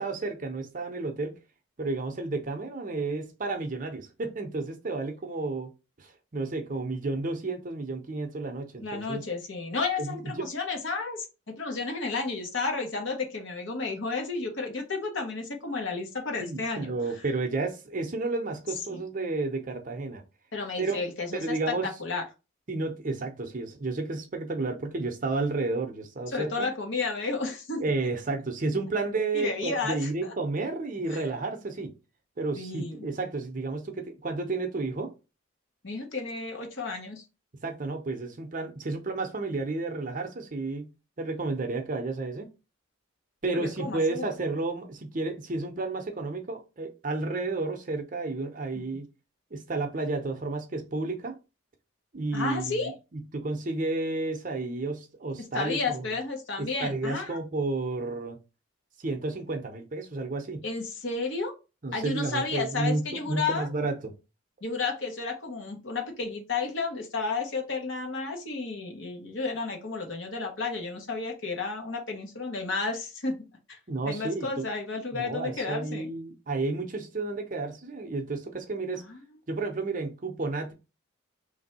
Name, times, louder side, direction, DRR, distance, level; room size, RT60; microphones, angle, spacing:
voice 1, 0.0-1.4 1.8-5.7 6.0-9.2 10.0-10.3 16.4-20.2 20.8-21.0 21.3-21.8 22.7-26.7 27.8-31.9 32.4-35.1 37.6-42.5 43.4-49.1 49.5-51.4 52.1-56.1 56.6-58.4 59.0-60.7 61.8-64.1 73.9-74.7 75.1-79.0 79.5-80.7, right 3 dB, 40° right, 0.6 m, -31 dB
voice 2, 8.8-16.9 18.9-19.0 20.5-22.2 26.3-27.8 29.3-30.3 31.1-31.2 32.5-33.1 35.8-37.2 43.5-44.3 52.3-52.9 55.5-57.4 60.6-61.5 61.9-63.7 64.6-73.8 74.1-76.1 78.9-79.2, left 4 dB, 65° left, 1.0 m, -32 dB
3.2 x 2.6 x 4.2 m
head